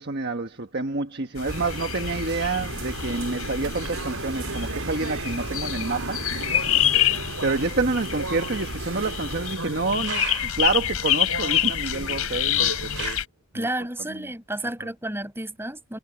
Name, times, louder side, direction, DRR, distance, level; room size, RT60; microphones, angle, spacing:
voice 1, 0.0-6.2 7.4-13.2 13.5-13.7 14.0-14.3 14.6-14.9, right 3 dB, 50° right, 1.4 m, -28 dB
sound 1, 1.4-13.2, left 11 dB, 80° left, 4.3 m, -27 dB
sound 2, 1.5-9.6, right 2 dB, 65° right, 5.1 m, -35 dB
sound 3, 3.8-10.7 11.2-13.2, right 4 dB, 85° right, 3.5 m, -38 dB
voice 2, 13.5-16.0, right 1 dB, 10° right, 6.6 m, -31 dB
head